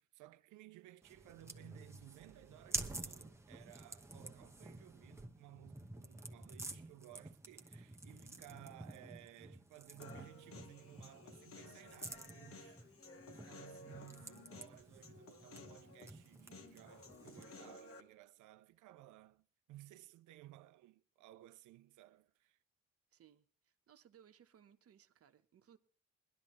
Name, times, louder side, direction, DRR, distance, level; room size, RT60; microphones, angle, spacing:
voice 1, 0.0-12.9 13.3-22.6, right 15 dB, 80° right, 0.6 m, -58 dB
sound 1, 1.0-17.6, right 2 dB, 10° right, 1.0 m, -50 dB
Human voice, 10.0-18.0, left 3 dB, 50° left, 1.2 m, -56 dB
voice 2, 23.1-25.8, right 9 dB, 50° right, 1.1 m, -65 dB
20.5 x 12.0 x 3.1 m
cardioid pair, 90°, 30 cm